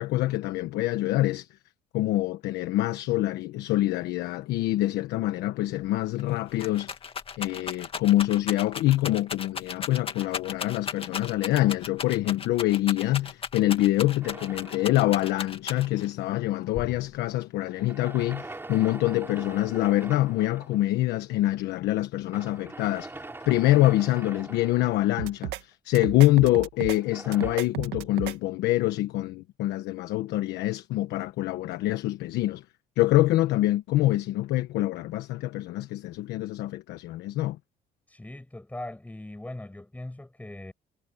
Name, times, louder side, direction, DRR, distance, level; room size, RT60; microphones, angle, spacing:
voice 1, 0.0-1.5 1.9-6.9 7.4-23.1 23.5-32.6 33.0-37.6, left 16 dB, 85° left, 1.2 m, -25 dB
Rattle, 5.8-5.9 6.2-16.1 16.8-17.4, left 6 dB, 35° left, 2.2 m, -36 dB
sound 1, 14.2-15.7 17.6-20.8 22.3-25.5 26.9-27.6, right 2 dB, 15° right, 6.4 m, -43 dB
sound 2, 25.2-25.6 25.9-27.0 27.3-28.3, right 15 dB, 85° right, 2.0 m, -34 dB
voice 2, 38.1-40.7, left 1 dB, 10° left, 6.9 m, -40 dB
cardioid pair, 110°, 17 cm